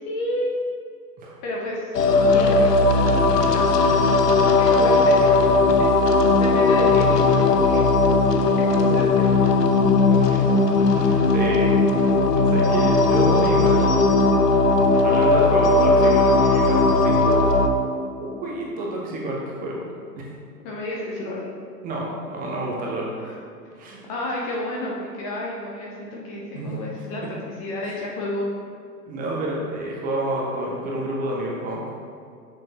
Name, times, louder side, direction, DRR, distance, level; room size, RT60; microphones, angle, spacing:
voice 1, 0.1-0.5 1.4-5.9 6.4-7.8 8.1-9.3 10.0-10.3 20.6-21.5 23.2-23.3 24.1-28.5, left 1 dB, 25° left, -3 dB, 0.7 m, -31 dB
sound 1, 1.9-17.7, left 3 dB, 75° left, 0.7 m, -18 dB
sound 2, 3.4-15.1, left 3 dB, 50° right, 1.0 m, -34 dB
voice 2, 10.8-11.8 12.4-14.1 14.9-17.4 18.2-19.9 21.8-23.1 23.7-24.0 26.4-26.7 29.1-31.9, right 1 dB, 15° right, -3 dB, 0.8 m, -29 dB
6.6 x 6.1 x 2.9 m, 2.3 s
figure-of-eight pair, 115°, 49 cm